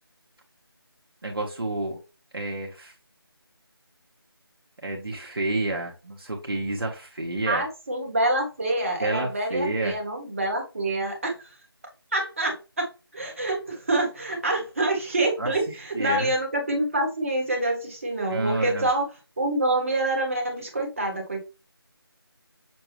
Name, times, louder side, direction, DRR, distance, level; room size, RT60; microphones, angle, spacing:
voice 1, 1.2-2.0 2.3-2.9 4.8-7.6 9.0-10.0 15.4-15.5 15.9-16.3 18.3-18.9, right 2 dB, 65° right, 0 dB, 1.4 m, -29 dB
voice 2, 7.5-11.5 12.1-12.9 13.1-19.1 19.4-21.5, right 1 dB, 35° right, 1 dB, 1.4 m, -26 dB
6.8 x 2.3 x 3.2 m, 0.29 s
figure-of-eight pair, 170°, 13 cm